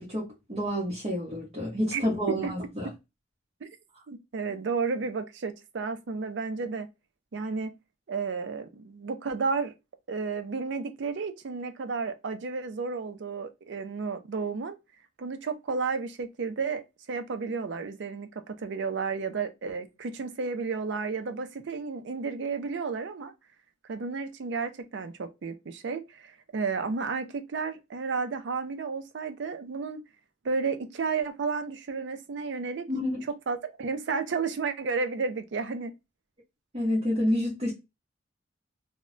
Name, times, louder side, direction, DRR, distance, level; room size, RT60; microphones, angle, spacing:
voice 1, 0.0-2.9 32.9-33.2 36.7-37.7, equal, 30° right, 0.8 m, -29 dB
voice 2, 4.1-6.9 7.3-7.7 8.1-9.7 10.1-14.8 15.2-23.3 23.8-30.0 30.4-32.8 33.5-35.9, right 4 dB, 65° right, 0.4 m, -32 dB
2.2 x 2.1 x 3.7 m
head